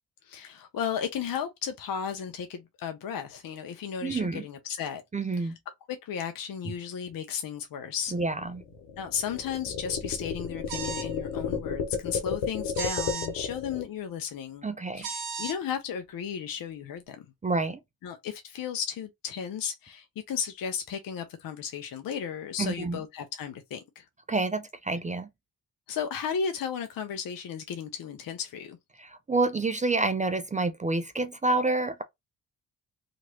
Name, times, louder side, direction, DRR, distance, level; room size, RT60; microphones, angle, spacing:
voice 1, 0.2-5.0 5.4-5.5 6.0-8.2 9.0-14.6 14.9-17.3 18.0-24.1 25.9-28.8, left 7 dB, 55° left, 0.6 m, -34 dB
voice 2, 4.0-4.4 5.1-5.6 8.1-8.6 14.6-15.1 17.4-17.8 22.6-23.0 24.3-25.3 29.0-32.0, right 3 dB, 20° right, 0.4 m, -28 dB
sound 1, 8.1-13.8, left 6 dB, 90° left, 0.9 m, -32 dB
sound 2, 10.7-11.1 12.7-13.3 15.0-15.6, right 6 dB, 85° right, 0.9 m, -34 dB
3.0 x 2.5 x 2.8 m
supercardioid pair, 50°, 41 cm